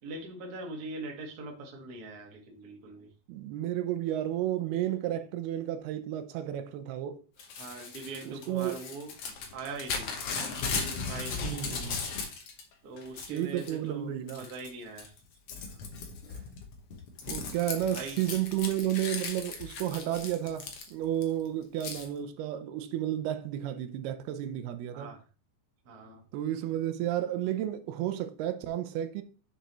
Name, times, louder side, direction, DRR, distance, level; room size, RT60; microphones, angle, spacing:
voice 1, 0.0-3.1 7.6-9.1 9.5-10.2 10.9-11.8 12.8-15.2 15.7-15.8 17.9-18.2 24.9-25.2 25.8-26.2, right 3 dB, 50° right, 1.1 m, -42 dB
voice 2, 3.3-7.2 8.3-8.8 11.4-12.0 13.3-14.5 17.3-25.1 26.3-29.2, right 12 dB, 85° right, 2.6 m, -32 dB
Crumpling crinkling / Tearing, 7.4-12.6 13.0-13.7 14.3-14.7 15.0-21.2 21.8-22.1, left 5 dB, 85° left, 1.2 m, -37 dB
7.6 x 6.9 x 3.0 m
omnidirectional pair, 4.5 m